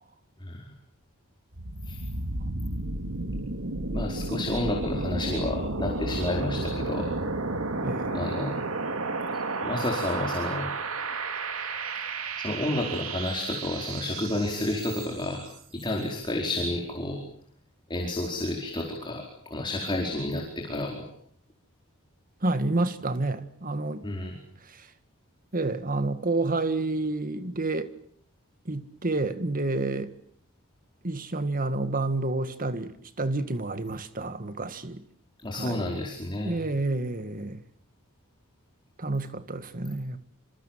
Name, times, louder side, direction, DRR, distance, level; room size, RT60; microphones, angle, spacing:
sound 1, 1.5-15.3, right 3 dB, 70° right, 2.5 m, -32 dB
voice 1, 3.9-7.1 8.1-8.5 9.6-10.7 12.4-15.4 15.7-17.2 17.9-21.1 24.0-24.3 35.4-36.6, left 1 dB, 20° left, 4.7 m, -30 dB
voice 2, 7.8-8.1 22.4-24.0 24.7-24.9 25.5-27.9 28.7-30.1 31.0-35.0 35.5-36.0 36.4-37.6 39.0-40.2, right 2 dB, 40° right, 1.8 m, -29 dB
27.0 x 27.0 x 7.5 m
head